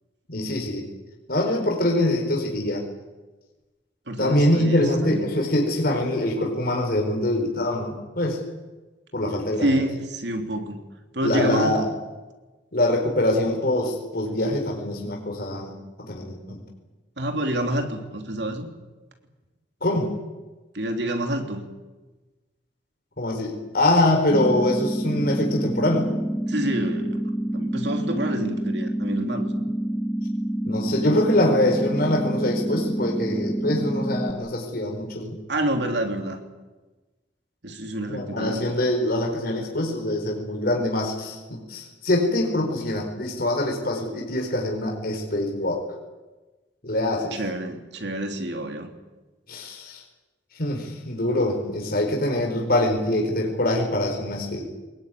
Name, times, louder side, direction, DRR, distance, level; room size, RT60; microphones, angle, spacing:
voice 1, 0.3-0.8 1.3-2.8 4.2-8.4 9.1-9.8 11.2-11.8 12.7-15.7 16.0-16.6 19.8-20.1 23.2-26.1 30.6-35.4 38.1-45.8 46.8-47.4 49.5-50.0 50.6-54.6, left 1 dB, 55° left, 1 dB, 4.6 m, -24 dB
voice 2, 4.1-5.3 9.6-10.9 11.1-11.9 17.2-18.7 20.7-21.7 26.5-27.2 27.5-29.6 35.5-36.4 37.6-38.6 47.3-48.9, right 1 dB, 65° right, 5 dB, 3.2 m, -28 dB
sound 1, 24.3-34.3, right 1 dB, 10° left, 1.0 m, -27 dB
22.5 x 20.5 x 9.4 m, 1.2 s
head